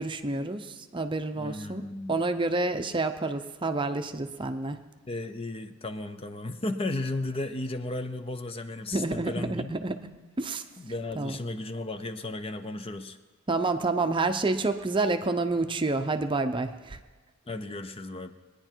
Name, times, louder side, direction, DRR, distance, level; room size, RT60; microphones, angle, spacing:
voice 1, 0.0-1.8 2.1-4.8 8.9-10.1 10.4-10.6 11.1-11.4 13.5-17.0, right 3 dB, 25° right, 7 dB, 0.6 m, -28 dB
voice 2, 1.3-2.2 5.1-9.7 10.8-13.2 17.5-18.3, left 2 dB, 30° left, 9 dB, 0.6 m, -34 dB
21.5 x 9.9 x 4.5 m, 1.3 s
head